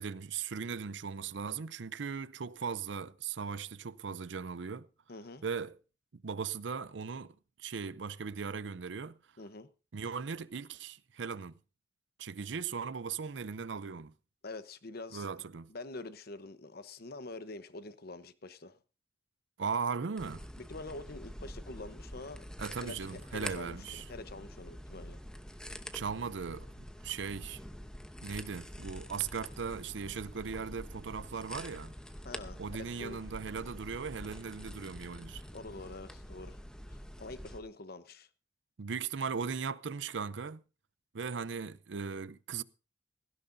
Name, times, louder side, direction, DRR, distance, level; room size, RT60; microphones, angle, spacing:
voice 1, 0.0-4.9 5.4-5.7 6.1-9.2 9.9-11.5 12.2-14.1 15.1-15.7 19.6-20.5 22.6-24.0 25.9-27.6 28.2-31.9 32.6-35.4 38.8-40.6 41.1-42.6, right 5 dB, 70° right, 0.6 m, -38 dB
voice 2, 5.1-5.4 9.4-9.7 14.4-15.3 15.7-18.8 20.6-22.5 22.8-25.2 32.2-33.3 35.5-36.6 36.9-38.3, left 2 dB, 55° left, 0.9 m, -46 dB
sound 1, 20.2-37.6, equal, 5° left, 0.8 m, -46 dB
17.0 x 16.0 x 2.6 m
head